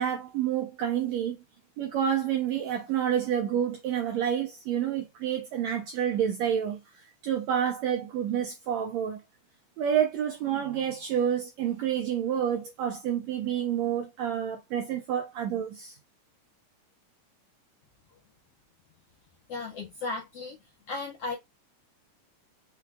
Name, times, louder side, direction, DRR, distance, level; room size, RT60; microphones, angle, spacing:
voice 1, 0.0-1.4 1.8-9.2 9.8-15.9, right 9 dB, 80° right, 1.6 m, -29 dB
voice 2, 19.5-20.6 20.9-21.4, left 3 dB, 75° left, 1.4 m, -35 dB
5.6 x 2.3 x 3.4 m
omnidirectional pair, 3.9 m